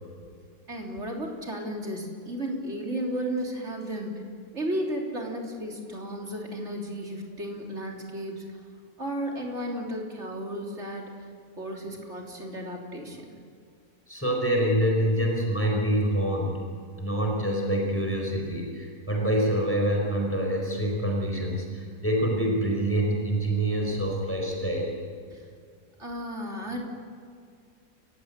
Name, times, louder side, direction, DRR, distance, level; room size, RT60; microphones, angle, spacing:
voice 1, 0.7-4.2 4.5-8.6 9.0-11.3 11.6-13.2 25.3-25.4 26.0-26.8, equal, 45° right, 0 dB, 3.8 m, -34 dB
voice 2, 14.1-16.6 17.0-24.9, right 1 dB, 10° left, -1 dB, 4.6 m, -26 dB
29.5 x 15.5 x 8.4 m, 2.2 s
omnidirectional pair, 1.7 m